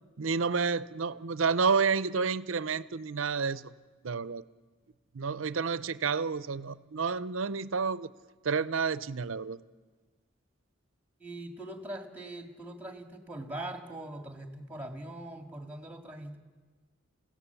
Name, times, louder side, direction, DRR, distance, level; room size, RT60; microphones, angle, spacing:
voice 1, 0.2-3.7 4.0-4.4 5.1-8.1 8.4-9.6, right 5 dB, 75° right, 16 dB, 0.6 m, -30 dB
voice 2, 11.2-16.4, right 1 dB, 10° right, 4 dB, 2.0 m, -42 dB
29.0 x 16.5 x 7.0 m, 1.4 s
head